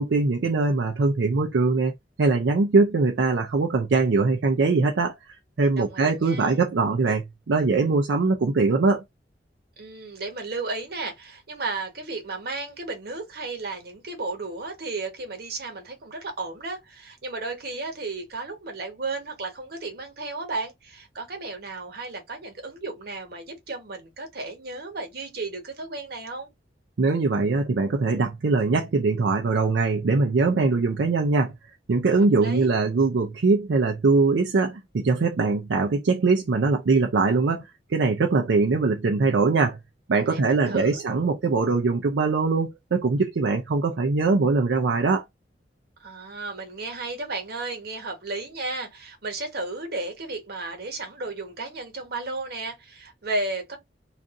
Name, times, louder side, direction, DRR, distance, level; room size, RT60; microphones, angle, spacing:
voice 1, 0.0-9.0 27.0-31.5 31.9-39.8 40.1-45.2, right 3 dB, 80° right, 0.5 m, -22 dB
voice 2, 5.8-6.6 9.8-26.5 32.1-32.8 40.3-41.0 46.0-53.8, right 3 dB, 60° right, 1.1 m, -34 dB
2.6 x 2.4 x 3.6 m
head